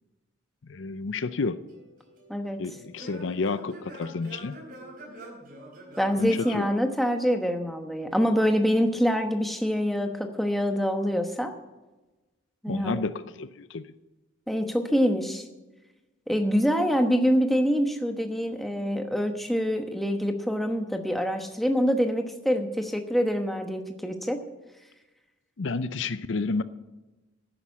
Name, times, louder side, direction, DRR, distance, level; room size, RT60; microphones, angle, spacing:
voice 1, 0.6-1.6 2.6-4.6 6.2-6.7 12.7-13.9 25.6-26.6, left 3 dB, 65° left, 14 dB, 0.5 m, -30 dB
Singing / Plucked string instrument, 1.7-7.6, equal, 45° right, 4.3 m, -45 dB
voice 2, 2.3-2.6 6.0-11.5 12.6-13.0 14.5-15.4 16.3-24.4, equal, ahead, 4 dB, 1.0 m, -25 dB
11.0 x 9.9 x 7.2 m, 1.1 s
head